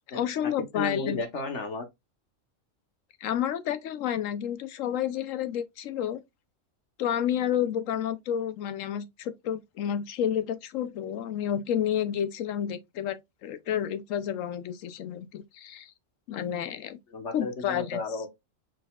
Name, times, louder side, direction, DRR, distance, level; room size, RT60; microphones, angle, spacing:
voice 1, 0.1-1.2 3.2-6.2 7.0-15.9 16.3-17.0 17.3-18.0, left 9 dB, 85° left, 1.0 m, -30 dB
voice 2, 0.7-1.8 17.1-18.3, left 3 dB, 65° left, 1.5 m, -33 dB
5.0 x 4.1 x 2.3 m
omnidirectional pair, 1.3 m